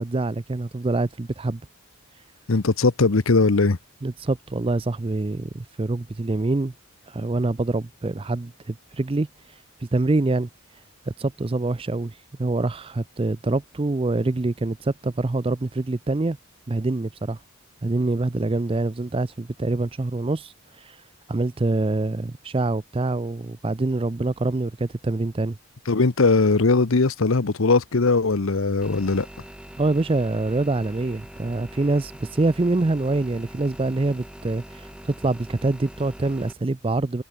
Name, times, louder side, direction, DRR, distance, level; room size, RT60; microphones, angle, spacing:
voice 1, 0.0-1.6 4.0-6.7 7.1-9.3 9.9-10.5 11.1-12.1 12.4-16.4 16.7-17.4 17.8-20.5 20.9-21.0 21.3-25.6 29.8-37.2, right 2 dB, 25° right, 0.4 m, -25 dB
voice 2, 2.5-3.8 25.9-29.3, left 3 dB, 70° left, 0.9 m, -20 dB
sound 1, 28.8-36.5, equal, 5° right, 3.6 m, -43 dB
head